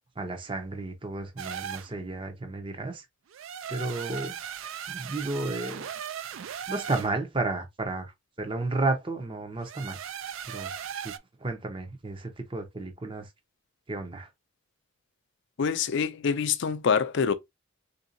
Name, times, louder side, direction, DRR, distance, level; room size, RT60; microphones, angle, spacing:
voice 1, 0.2-3.1 3.7-4.4 4.9-5.9 6.7-8.1 8.4-10.0 10.5-10.7 11.0-11.1 11.4-13.3 13.9-14.3, right 2 dB, 25° right, 0.6 m, -32 dB
sound 1, 1.4-1.9 3.3-7.1 9.6-11.2, right 8 dB, 70° right, 0.4 m, -37 dB
voice 2, 15.6-17.3, left 6 dB, 60° left, 0.4 m, -25 dB
3.8 x 2.6 x 2.6 m
head